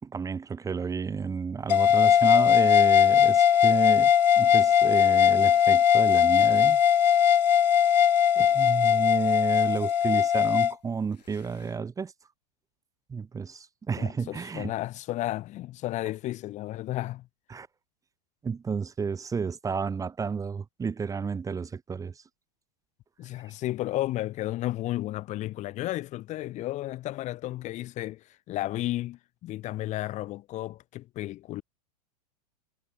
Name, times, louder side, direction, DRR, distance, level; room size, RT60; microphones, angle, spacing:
voice 1, 0.0-6.8 8.3-12.1 13.1-14.7 17.5-17.7 18.4-22.2, right 5 dB, 15° right, 2.9 m, -31 dB
sound 1, 1.7-10.7, left 9 dB, 80° left, 0.4 m, -20 dB
voice 2, 14.0-17.3 23.2-31.6, left 15 dB, 35° left, 3.0 m, -33 dB
figure-of-eight pair, 95°, 21 cm